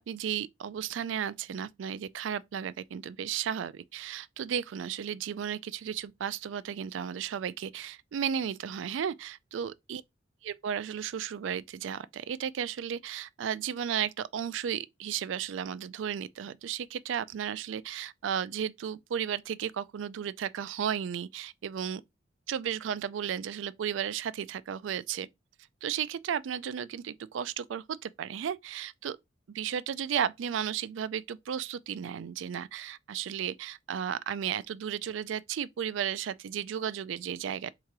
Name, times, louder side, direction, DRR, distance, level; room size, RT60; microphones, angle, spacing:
voice 1, 0.0-10.0 10.4-22.0 22.5-25.3 25.8-29.2 29.5-37.7, right 8 dB, 80° right, 0.3 m, -34 dB
3.7 x 2.9 x 4.6 m
head